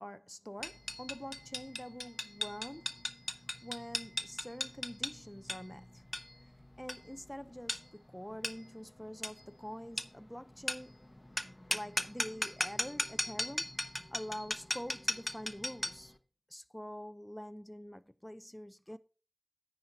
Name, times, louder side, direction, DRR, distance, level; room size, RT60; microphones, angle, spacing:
voice 1, 0.0-3.0 3.3-6.2 6.8-11.1 11.7-13.7 14.1-16.1 16.5-19.0, equal, 10° left, 0.5 m, -46 dB
sound 1, 0.6-16.1, left 1 dB, 30° left, 0.9 m, -38 dB
9.6 x 4.3 x 5.1 m
wide cardioid pair, 45°, 0 cm